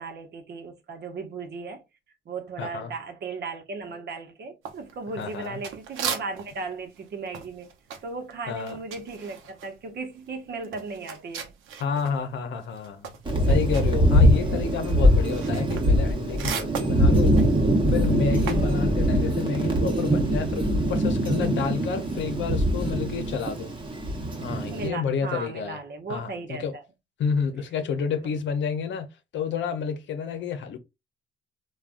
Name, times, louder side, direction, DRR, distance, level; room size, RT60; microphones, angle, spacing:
voice 1, 0.0-1.8 2.3-7.7 8.0-11.5 18.5-18.9 24.7-26.8 28.2-28.4, right 4 dB, 55° right, 0.9 m, -36 dB
voice 2, 2.6-2.9 5.2-5.6 8.5-8.8 11.8-13.1 13.5-17.4 17.9-23.7 24.4-25.8 26.1-26.8 27.2-29.1 29.3-30.8, left 6 dB, 70° left, 0.7 m, -29 dB
sound 1, 4.6-6.7 6.9-12.2 12.5-18.8, right 7 dB, 85° right, 0.7 m, -37 dB
Thunder, 13.3-24.9, equal, 25° right, 1.0 m, -22 dB
3.4 x 2.3 x 2.4 m
cardioid pair, 90°, 20 cm